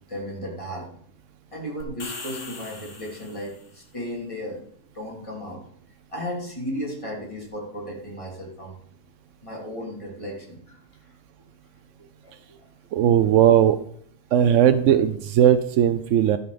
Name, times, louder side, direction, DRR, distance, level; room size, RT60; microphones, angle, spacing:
voice 1, 0.1-0.9 1.5-4.6 4.9-5.7 6.1-8.8 9.4-11.1 12.2-12.6, equal, 25° left, -3 dB, 3.3 m, -35 dB
sound 1, 1.8-3.7, left 3 dB, 65° left, 2.2 m, -40 dB
voice 2, 12.9-13.8 14.3-16.4, right 10 dB, 70° right, 10 dB, 0.9 m, -18 dB
13.0 x 5.6 x 6.8 m, 0.64 s
omnidirectional pair, 1.4 m